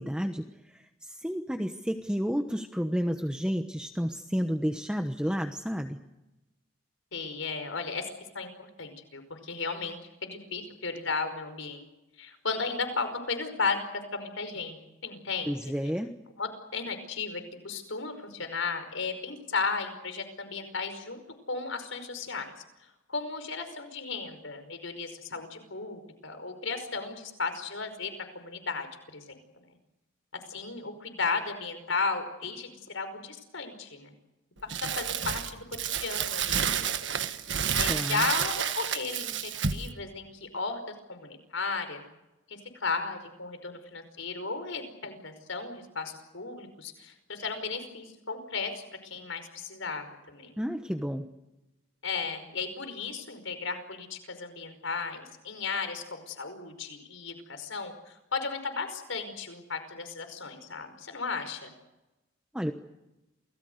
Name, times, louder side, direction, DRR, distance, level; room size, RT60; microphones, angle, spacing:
voice 1, 0.0-6.0 15.5-16.1 37.9-38.2 50.6-51.3 62.5-62.7, equal, 5° right, 5 dB, 1.1 m, -31 dB
voice 2, 7.1-8.1 8.3-11.8 12.2-14.8 15.0-15.6 16.4-21.2 21.5-22.5 23.1-29.6 30.5-34.1 34.6-37.3 37.7-40.8 41.1-42.0 42.5-50.6 52.0-61.7, left 4 dB, 75° left, 9 dB, 5.2 m, -35 dB
Crumpling crinkling, 34.7-39.9, right 8 dB, 65° right, 1.5 m, -30 dB
28.5 x 19.5 x 8.1 m, 0.98 s
head